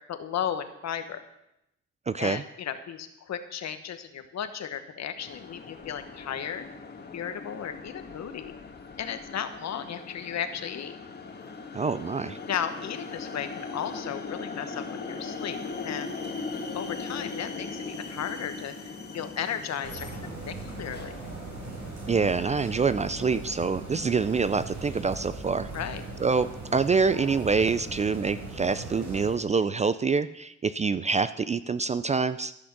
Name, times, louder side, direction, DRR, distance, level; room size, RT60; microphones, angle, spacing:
voice 1, 0.1-1.2 2.2-6.7 7.1-8.5 9.0-11.0 12.5-16.1 16.7-18.7 19.1-21.2 25.7-26.0, left 8 dB, 60° left, 9 dB, 1.2 m, -35 dB
voice 2, 2.1-2.4 11.7-12.4 22.1-25.7 26.2-32.5, right 5 dB, 25° right, 14 dB, 0.4 m, -26 dB
sound 1, 5.2-22.6, left 4 dB, 35° left, 1.5 m, -39 dB
sound 2, 19.8-29.4, right 3 dB, 70° right, 3.8 m, -39 dB
13.5 x 6.2 x 6.0 m, 0.84 s
cardioid pair, 90°, 30 cm